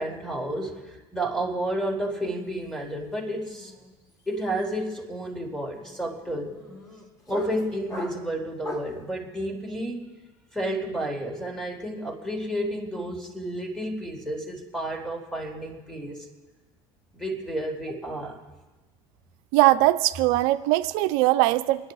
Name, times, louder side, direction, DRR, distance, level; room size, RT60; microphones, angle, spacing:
voice 1, 0.0-3.7 4.3-6.6 7.3-10.1 10.5-16.2 17.1-18.4, right 1 dB, 5° left, 0 dB, 3.7 m, -31 dB
sound 1, 2.2-2.5 2.8-9.0, left 2 dB, 30° left, 4.5 m, -42 dB
voice 2, 19.5-21.9, right 17 dB, 80° right, 10 dB, 0.5 m, -21 dB
29.0 x 10.5 x 4.0 m, 1.2 s
supercardioid pair, 105°, 12 cm